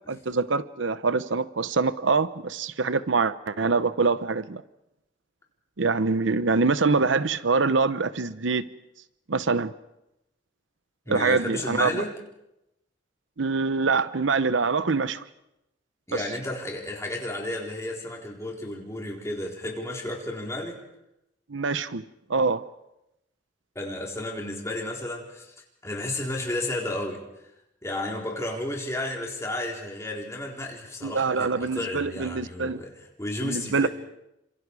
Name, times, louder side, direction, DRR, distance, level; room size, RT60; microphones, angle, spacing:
voice 1, 0.1-4.6 5.8-8.6 9.3-9.7 11.1-12.0 13.4-15.2 21.5-22.0 22.3-22.6 31.0-32.8 33.4-33.9, right 4 dB, 85° right, 0.8 m, -24 dB
voice 2, 11.1-12.1 16.1-20.8 23.7-25.5 25.8-27.2 27.8-33.9, left 1 dB, 15° left, 4.2 m, -32 dB
28.5 x 26.5 x 4.8 m
head